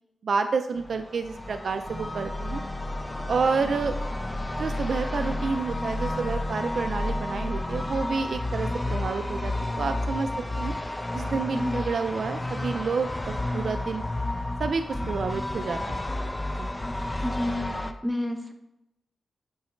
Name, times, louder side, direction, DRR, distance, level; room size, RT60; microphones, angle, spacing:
voice 1, 0.2-2.6 3.3-3.9 4.6-10.3 10.6-10.7 11.1-14.0 14.6-16.0 16.6-16.7, right 5 dB, 65° right, 8 dB, 0.4 m, -29 dB
sound 1, 0.7-17.9, left 1 dB, 15° left, 0.5 m, -31 dB
voice 2, 17.2-17.7 18.0-18.5, left 1 dB, ahead, 5 dB, 0.9 m, -29 dB
8.7 x 3.9 x 4.4 m, 0.89 s
cardioid pair, 85°, 0 cm